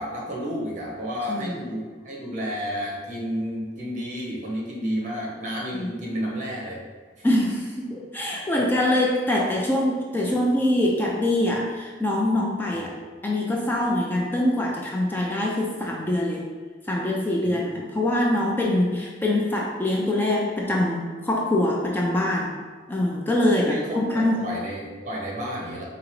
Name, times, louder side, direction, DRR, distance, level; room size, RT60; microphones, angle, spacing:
voice 1, 0.0-6.8 7.2-7.3 17.4-17.6 23.6-25.9, equal, 45° right, -3 dB, 1.0 m, -31 dB
voice 2, 1.3-1.6 5.7-5.9 7.2-12.9 13.2-16.4 16.9-22.6 22.9-24.5, left 1 dB, 10° left, -2 dB, 0.3 m, -24 dB
4.8 x 2.9 x 3.1 m, 1.5 s
head